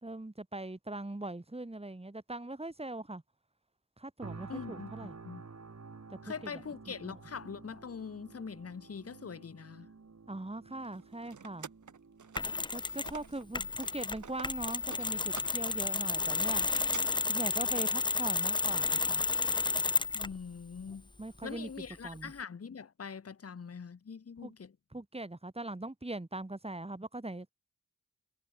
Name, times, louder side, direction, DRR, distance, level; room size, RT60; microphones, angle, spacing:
voice 1, 0.0-3.2 4.0-5.1 6.1-6.5 6.9-7.2 10.3-11.7 12.7-16.7 17.3-19.2 21.2-21.7 22.0-22.3 24.4-24.5 24.9-27.5, right 2 dB, 20° right, 2.5 m, -41 dB
sound 1, 4.2-19.2 19.7-19.9, right 4 dB, 60° right, 3.6 m, -53 dB
voice 2, 4.5-5.4 6.2-9.9 13.6-13.7 20.1-21.1 21.4-24.7, left 6 dB, 55° left, 1.0 m, -43 dB
sound 2, 10.8-13.4 13.7-17.0, right 7 dB, 85° right, 1.5 m, -49 dB
Mechanisms, 12.4-13.2 13.5-20.4, left 3 dB, 15° left, 0.4 m, -31 dB
cardioid pair, 50°, 29 cm